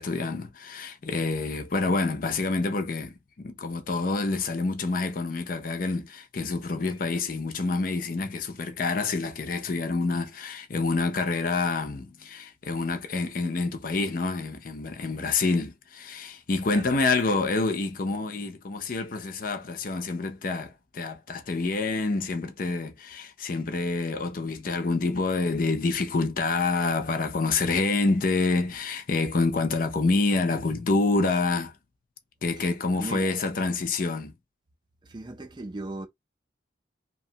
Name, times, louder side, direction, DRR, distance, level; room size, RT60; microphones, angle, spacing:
voice 1, 0.0-31.7 32.4-34.3, left 3 dB, 45° left, 0.5 m, -27 dB
voice 2, 33.0-33.3 35.0-36.1, right 2 dB, 25° right, 0.4 m, -37 dB
2.9 x 2.2 x 2.7 m
head